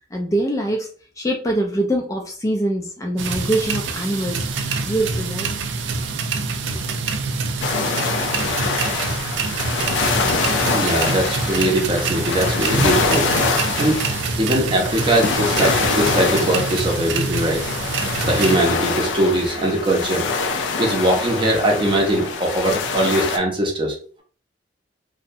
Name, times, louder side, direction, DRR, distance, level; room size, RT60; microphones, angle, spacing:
voice 1, 0.1-0.9 1.2-5.5, right 1 dB, 20° left, 1 dB, 0.3 m, -23 dB
sound 1, 3.2-18.6, right 4 dB, 85° right, 0.4 m, -26 dB
sound 2, 7.6-23.4, left 4 dB, 90° left, 0.4 m, -24 dB
voice 2, 10.7-13.3 13.8-14.1 14.4-17.6 18.3-20.3 20.8-24.2, right 1 dB, 25° right, 0 dB, 0.6 m, -21 dB
2.6 x 2.0 x 2.6 m, 0.42 s
head